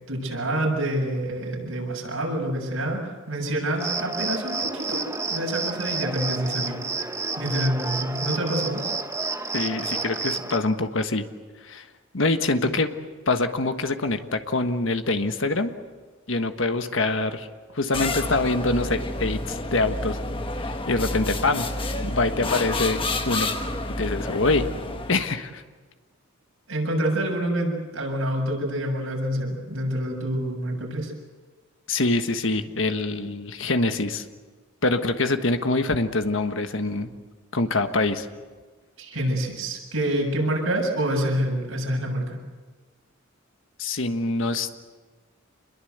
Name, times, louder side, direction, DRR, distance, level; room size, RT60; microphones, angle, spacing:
voice 1, 0.1-3.0 3.3-5.0 5.2-6.8 7.4-8.8 26.7-31.1 39.0-42.4, right 1 dB, 90° right, -1 dB, 7.3 m, -27 dB
Cricket, 3.8-10.6, right 3 dB, 15° right, 1.1 m, -30 dB
voice 2, 9.5-11.3 11.6-11.9 12.1-12.9 13.3-15.7 16.3-17.5 17.7-20.2 20.6-21.7 22.0-23.5 24.0-24.7 25.1-25.6 31.9-34.2 34.8-37.1 37.5-38.3 43.8-44.7, left 2 dB, 70° left, 8 dB, 1.5 m, -25 dB
sound 1, 17.9-25.3, left 2 dB, 25° left, 1.4 m, -29 dB
27.0 x 22.0 x 8.1 m, 1.4 s
head